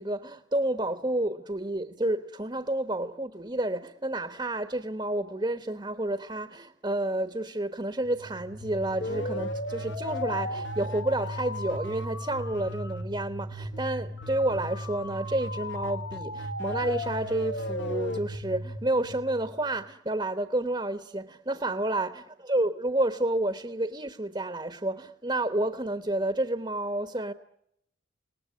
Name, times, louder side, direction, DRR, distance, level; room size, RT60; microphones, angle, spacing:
voice 1, 0.0-22.1 22.5-27.3, right 1 dB, 25° right, 1.2 m, -30 dB
sound 1, 8.0-19.8, left 1 dB, 65° left, 2.0 m, -35 dB
30.0 x 19.5 x 9.6 m
head